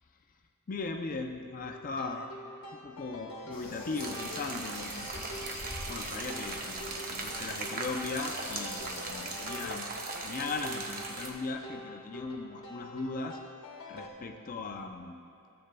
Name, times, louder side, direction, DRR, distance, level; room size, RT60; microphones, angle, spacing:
voice 1, 0.7-2.3 2.7-5.2 5.9-9.9 10.2-13.4 13.9-15.2, left 3 dB, 40° left, 4 dB, 0.5 m, -38 dB
sound 1, 1.6-14.1, left 1 dB, 70° left, 1.0 m, -46 dB
sound 2, 3.5-9.6, left 2 dB, 25° left, 1.5 m, -46 dB
sound 3, 4.0-11.3, right 3 dB, 40° right, 0.8 m, -39 dB
13.5 x 7.9 x 2.2 m, 2.8 s
head